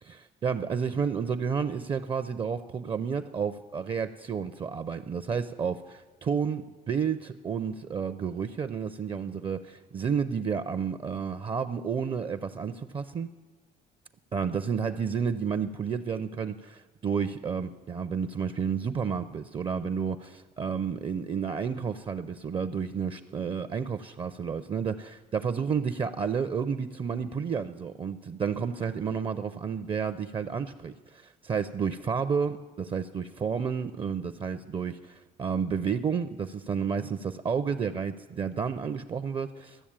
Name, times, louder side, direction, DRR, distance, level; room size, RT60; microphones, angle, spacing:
voice 1, 0.1-13.3 14.3-39.9, right 6 dB, 30° right, 11 dB, 0.5 m, -31 dB
13.5 x 7.1 x 8.7 m, 1.2 s
cardioid pair, 110°, 17 cm